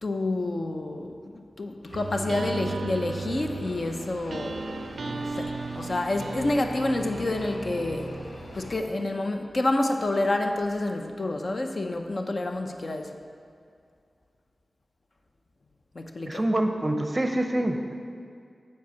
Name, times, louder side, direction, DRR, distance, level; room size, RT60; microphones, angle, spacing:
voice 1, 0.0-4.6 5.0-8.2 8.5-13.2 15.9-16.4, left 2 dB, 50° left, 4 dB, 0.6 m, -28 dB
zagreb Train Leaving, 1.8-8.8, left 1 dB, 90° left, 1.6 m, -44 dB
sound 1, 1.9-8.7, right 3 dB, 70° right, 0.4 m, -36 dB
voice 2, 16.3-17.9, right 1 dB, 25° right, 5 dB, 0.6 m, -26 dB
7.7 x 4.6 x 7.1 m, 2.2 s
wide cardioid pair, 90°, 0 cm